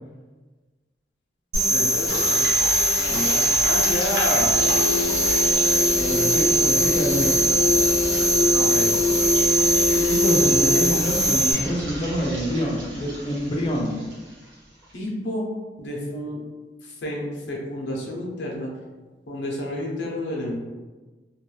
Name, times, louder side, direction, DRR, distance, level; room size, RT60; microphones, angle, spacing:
sound 1, 1.5-11.5, right 1 dB, 25° right, 0.8 m, -21 dB
voice 1, 1.7-2.4 3.0-4.6 8.5-8.9 13.0-13.1 14.9-15.5 15.8-16.4 16.8-18.7 19.3-20.6, left 1 dB, 85° left, -2 dB, 0.7 m, -30 dB
sound 2, 2.1-14.9, equal, 90° right, 0.9 m, -34 dB
sound 3, 4.5-11.0, left 2 dB, 50° right, 0.4 m, -25 dB
voice 2, 6.0-7.5 8.1-8.2 9.9-14.0, equal, 30° left, -2 dB, 0.4 m, -26 dB
2.6 x 2.2 x 3.1 m, 1.3 s
head